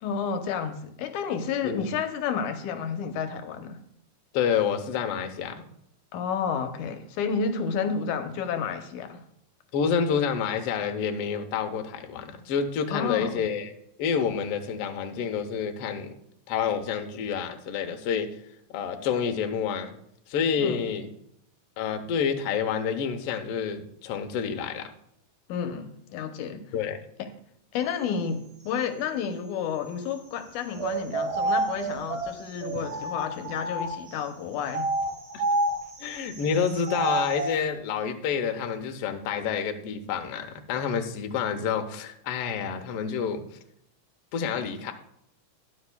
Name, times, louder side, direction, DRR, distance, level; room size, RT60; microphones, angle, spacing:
voice 1, 0.0-3.8 6.1-9.2 12.9-13.3 20.6-20.8 25.5-26.6 27.2-27.3 27.7-34.9, left 6 dB, 80° left, 2.3 m, -31 dB
voice 2, 4.3-5.6 9.7-13.7 14.0-16.1 16.5-18.3 18.7-19.9 20.3-21.1 21.8-24.9 26.7-27.0 35.3-35.4 36.0-43.4 44.3-44.9, left 7 dB, 65° left, 1.6 m, -28 dB
sound 1, 30.7-34.1 34.7-37.6, right 2 dB, 55° right, 3.0 m, -29 dB
21.0 x 7.3 x 2.3 m
omnidirectional pair, 3.5 m